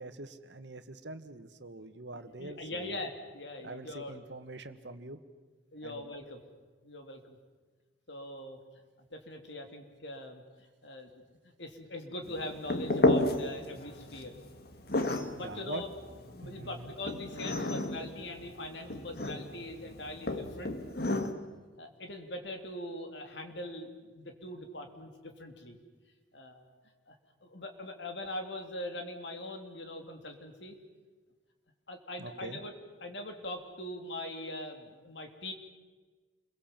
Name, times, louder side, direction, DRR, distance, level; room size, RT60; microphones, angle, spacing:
voice 1, 0.0-3.0 3.6-5.2 5.8-6.0 15.4-15.8 16.4-16.9 32.2-32.6, right 2 dB, 70° right, 9 dB, 1.7 m, -44 dB
voice 2, 2.4-4.2 5.7-6.4 6.8-7.4 8.1-8.6 9.1-10.4 10.8-14.3 15.2-15.9 16.3-20.8 21.8-25.8 26.3-26.7 27.1-27.2 27.4-30.8 31.9-32.7 33.0-35.5, left 1 dB, 70° left, 4 dB, 3.5 m, -42 dB
sound 1, 12.2-21.3, left 2 dB, 55° left, 1.9 m, -33 dB
29.5 x 23.0 x 7.5 m, 1.3 s
head